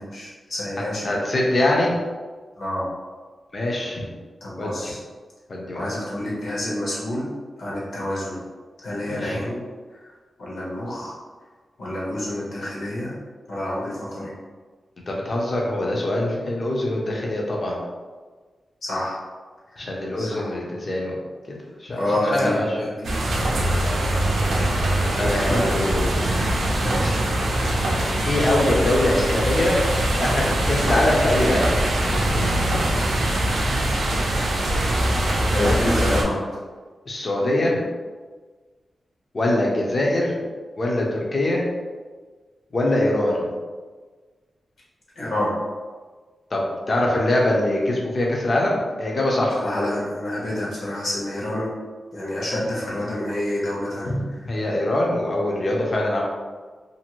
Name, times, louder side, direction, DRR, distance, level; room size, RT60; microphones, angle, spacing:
voice 1, 0.0-1.2 2.6-2.8 4.4-5.0 5.7-7.3 7.6-8.4 8.8-9.6 10.4-11.1 11.8-13.1 13.5-14.3 18.8-19.2 19.7-19.9 20.2-20.5 22.0-22.9 23.3-23.5 25.3-25.7 26.2-27.2 35.5-36.4 45.1-45.5 49.6-51.7 52.1-54.1, left 1 dB, 65° left, -6 dB, 1.0 m, -28 dB
voice 2, 1.0-1.9 3.5-4.1 4.6-4.9 5.5-5.9 9.1-9.4 15.1-17.8 19.8-21.2 21.5-22.0 22.3-22.9 23.5-23.9 25.0-26.1 28.3-29.8 30.2-31.9 35.5-36.2 37.1-37.9 39.3-40.3 40.8-41.6 42.7-43.5 46.5-49.6 54.0-56.2, left 1 dB, 35° left, -2 dB, 0.6 m, -23 dB
sound 1, 23.0-36.2, right 1 dB, 90° right, 0.5 m, -22 dB
2.6 x 2.5 x 3.0 m, 1.4 s
wide cardioid pair, 150°, 0 cm